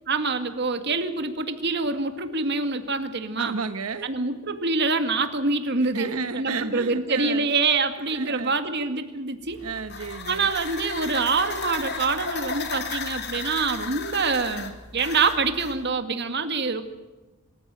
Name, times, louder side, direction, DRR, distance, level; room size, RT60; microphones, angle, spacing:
voice 1, 0.1-3.6 4.0-9.6 10.3-16.8, right 4 dB, 50° right, 8 dB, 2.1 m, -25 dB
voice 2, 3.4-4.1 5.8-7.5 8.1-8.6 9.6-10.5, right 4 dB, 85° right, 9 dB, 1.1 m, -32 dB
sound 1, 9.5-15.8, left 4 dB, 50° left, 3.0 m, -34 dB
26.0 x 14.5 x 9.0 m, 1.2 s
head